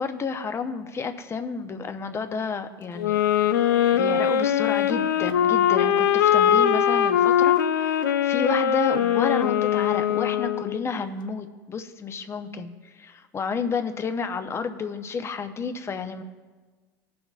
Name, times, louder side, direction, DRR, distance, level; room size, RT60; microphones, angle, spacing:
voice 1, 0.0-3.2 3.6-16.2, left 5 dB, 25° left, 8 dB, 0.8 m, -31 dB
sound 1, 3.0-10.8, left 9 dB, 90° left, 0.5 m, -21 dB
17.0 x 6.1 x 2.4 m, 1.4 s
hypercardioid pair, 95°, 10 cm